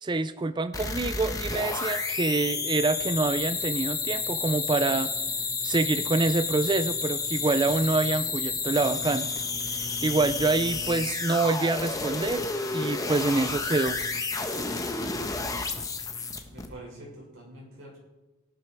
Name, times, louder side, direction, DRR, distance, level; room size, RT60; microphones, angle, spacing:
voice 1, 0.0-5.1 5.6-9.3 9.7-12.4 12.7-14.0, right 3 dB, 20° right, 12 dB, 0.4 m, -26 dB
sound 1, 0.7-16.7, left 4 dB, 15° left, 1.1 m, -31 dB
voice 2, 16.5-18.0, right 1 dB, 60° right, -3 dB, 6.2 m, -45 dB
17.0 x 11.5 x 4.7 m, 1.1 s
head